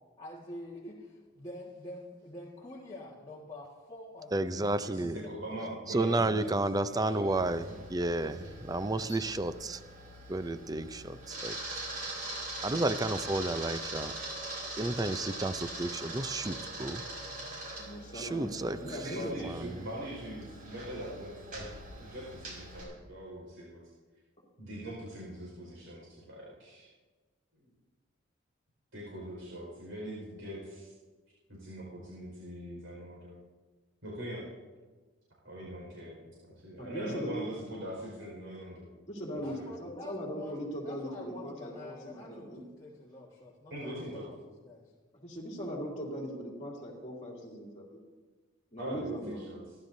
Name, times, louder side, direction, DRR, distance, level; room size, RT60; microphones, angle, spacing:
voice 1, 0.2-5.7 8.4-9.2 17.1-17.6 39.4-40.6 40.8-44.9, left 2 dB, 20° left, -6 dB, 1.6 m, -47 dB
voice 2, 4.3-5.2 5.9-9.8 10.3-11.6 12.0-12.1 12.6-14.1 14.8-17.0 18.1-19.0 19.4-19.8, right 2 dB, 20° right, 12 dB, 0.5 m, -32 dB
voice 3, 4.8-6.5 6.8-7.8 18.9-21.6 22.0-23.8 24.6-26.9 27.6-27.7 28.9-30.9 31.5-33.3 34.0-34.5 35.4-38.9 39.5-39.7 43.7-44.3 48.8-49.8, right 1 dB, 80° right, -4 dB, 4.8 m, -42 dB
Camera, 7.2-22.8, right 2 dB, 45° right, 5.5 m, -42 dB
voice 4, 17.8-19.3 36.8-37.5 39.1-42.6 45.2-48.0 48.7-49.5, equal, 35° left, -1 dB, 2.9 m, -39 dB
27.5 x 12.0 x 2.7 m, 1.3 s
head